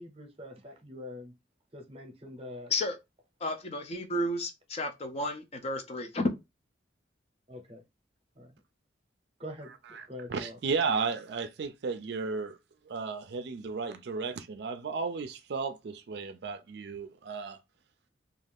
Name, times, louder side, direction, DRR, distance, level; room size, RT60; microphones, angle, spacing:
voice 1, 0.0-1.3 1.7-2.7 7.5-7.8 8.4-8.6 9.4-10.6, left 1 dB, 30° right, 0.7 m, -44 dB
voice 2, 3.4-6.3, left 1 dB, 35° left, 0.4 m, -32 dB
voice 3, 9.9-12.6 12.9-17.6, right 4 dB, 60° right, 0.4 m, -34 dB
2.4 x 2.4 x 3.4 m
head